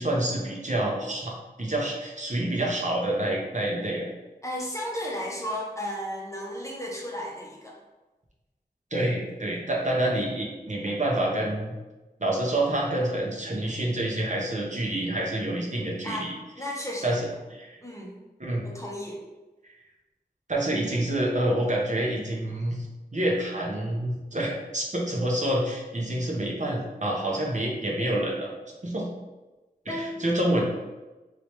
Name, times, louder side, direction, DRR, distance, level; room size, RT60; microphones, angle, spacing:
voice 1, 0.0-4.1 8.9-11.8 12.2-16.3 17.0-17.8 18.4-18.7 19.6-19.7 20.5-22.8 23.1-28.5 28.8-29.1 29.9-30.6, right 1 dB, 45° right, -2 dB, 0.7 m, -27 dB
voice 2, 4.4-7.8 16.0-16.3 16.6-17.2 17.8-18.1 18.6-19.2 29.9-30.2, equal, 20° left, -2 dB, 0.7 m, -34 dB
3.2 x 3.0 x 2.9 m, 1.1 s
wide cardioid pair, 50°, 17 cm